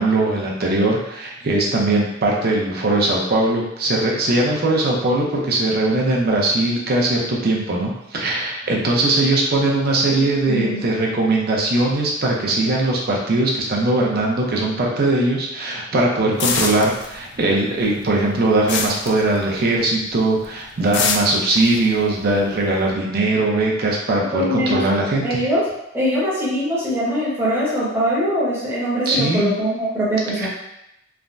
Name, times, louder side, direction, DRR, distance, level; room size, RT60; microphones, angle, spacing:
voice 1, 0.0-25.4 29.1-29.5 30.4-30.5, right 2 dB, 50° right, -2 dB, 0.6 m, -20 dB
voice 2, 10.5-10.9 24.3-24.8 25.2-25.6 25.9-30.5, equal, 10° right, -9 dB, 1.0 m, -22 dB
sound 1, 16.4-17.5 17.8-19.8 20.2-20.5 20.9-22.8, left 5 dB, 60° left, 0.3 m, -25 dB
3.3 x 2.1 x 2.5 m, 0.83 s
head